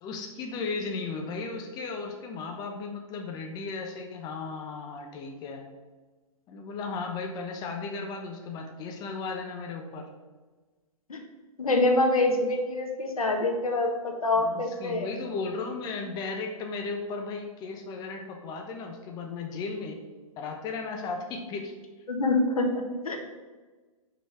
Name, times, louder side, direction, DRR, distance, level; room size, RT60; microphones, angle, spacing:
voice 1, 0.0-5.7 6.5-10.1 14.4-20.0 20.4-21.7, left 4 dB, 20° left, 3 dB, 0.9 m, -35 dB
voice 2, 11.6-15.1 22.1-23.2, left 2 dB, 80° left, 3 dB, 1.5 m, -25 dB
5.5 x 5.4 x 5.7 m, 1.3 s
hypercardioid pair, 130°, 18 cm